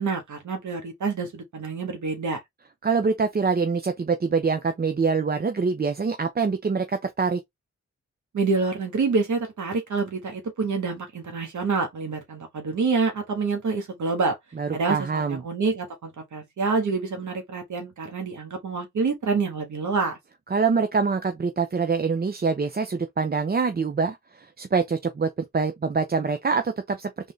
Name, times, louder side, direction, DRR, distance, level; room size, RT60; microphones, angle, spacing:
voice 1, 0.0-2.4 8.3-14.3 14.7-20.2, right 4 dB, 80° right, 1.5 m, -27 dB
voice 2, 2.8-7.4 14.6-15.4 20.5-27.1, right 5 dB, 35° right, 0.6 m, -25 dB
3.9 x 3.6 x 3.3 m
wide cardioid pair, 135°, 29 cm